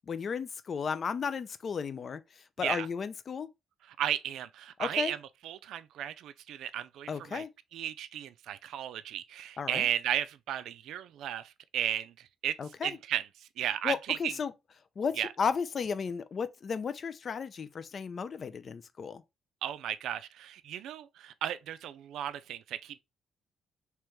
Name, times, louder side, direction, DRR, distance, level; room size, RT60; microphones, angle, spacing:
voice 1, 0.1-3.5 4.8-5.1 7.1-7.5 9.6-9.9 12.6-13.0 13.8-14.5 15.0-19.2, left 6 dB, 45° left, 0.4 m, -34 dB
voice 2, 4.0-5.2 5.4-7.4 7.7-12.1 12.4-12.6 12.8-13.2 13.6-14.3 15.2-15.3 19.6-23.0, right 11 dB, 80° right, 0.3 m, -34 dB
3.1 x 3.0 x 3.4 m
cardioid pair, 90°, 0 cm